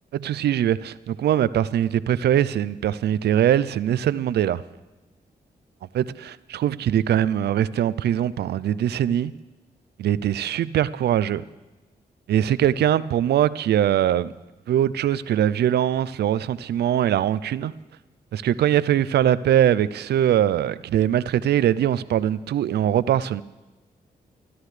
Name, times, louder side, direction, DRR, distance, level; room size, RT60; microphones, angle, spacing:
voice 1, 0.1-4.6 5.9-9.3 10.0-11.4 12.3-14.3 14.7-17.7 18.3-23.4, right 10 dB, 75° right, 17 dB, 0.5 m, -22 dB
29.5 x 11.0 x 3.3 m, 1.1 s
supercardioid pair, 45°, 17 cm